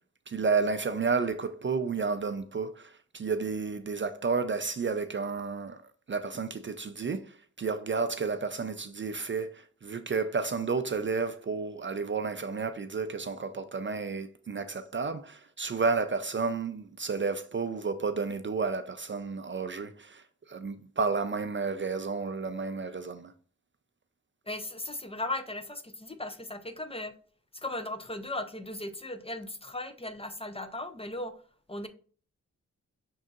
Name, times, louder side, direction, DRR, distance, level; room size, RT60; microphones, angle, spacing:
voice 1, 0.3-5.8 6.1-23.3, right 4 dB, 40° right, 0.4 m, -31 dB
voice 2, 24.5-27.1 27.5-31.3 31.7-31.9, left 1 dB, 20° left, 0.6 m, -37 dB
5.4 x 3.6 x 2.4 m
cardioid pair, 45°, 32 cm